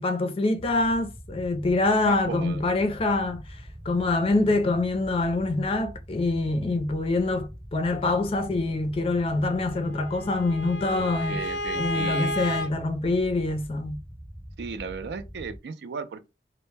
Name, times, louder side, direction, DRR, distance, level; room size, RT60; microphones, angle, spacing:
voice 1, 0.0-11.4 11.7-14.0, left 2 dB, 35° left, 0.4 m, -25 dB
sound 1, 0.6-15.6, equal, 20° right, 0.8 m, -43 dB
voice 2, 2.0-2.6 10.9-12.5 14.6-16.3, right 5 dB, 65° right, 0.3 m, -36 dB
Bowed string instrument, 9.6-12.7, left 1 dB, 85° left, 0.6 m, -32 dB
2.1 x 2.0 x 3.2 m
head